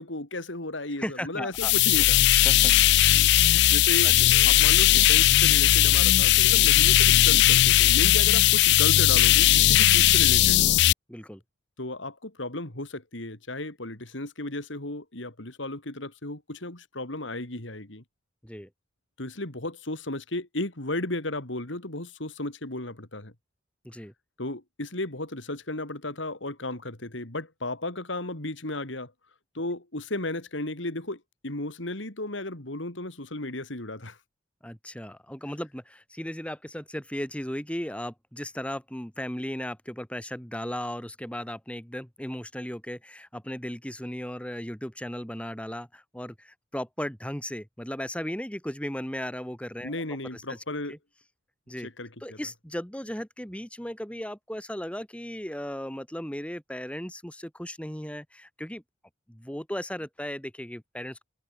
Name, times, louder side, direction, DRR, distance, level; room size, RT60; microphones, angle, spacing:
voice 1, 0.0-2.2 3.6-4.1 4.4-10.6 11.8-18.0 19.2-23.3 24.4-29.1 29.5-34.2 49.8-50.9 51.8-52.4, left 2 dB, 75° left, 3.6 m, -34 dB
voice 2, 1.0-1.7 2.4-2.7 3.5-3.7 4.0-4.5 11.1-11.4 18.4-18.7 23.8-24.1 34.6-49.9 50.3-50.6 50.9-51.0 51.7-51.9 52.2-58.8 59.3-61.2, equal, 5° left, 2.7 m, -36 dB
sound 1, 1.5-10.9, left 14 dB, 60° left, 0.3 m, -18 dB
head